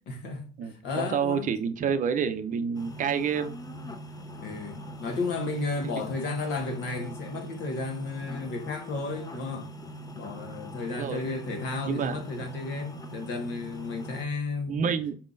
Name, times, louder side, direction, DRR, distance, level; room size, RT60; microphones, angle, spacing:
voice 1, 0.1-1.5 4.3-9.7 10.1-14.9, left 3 dB, 60° left, 1.4 m, -33 dB
voice 2, 0.6-3.6 10.8-11.2 11.8-12.2 14.7-15.2, right 7 dB, 40° right, 0.6 m, -28 dB
sound 1, 2.7-14.2, equal, 20° left, 0.6 m, -42 dB
4.5 x 3.6 x 2.5 m
hypercardioid pair, 80°, 20 cm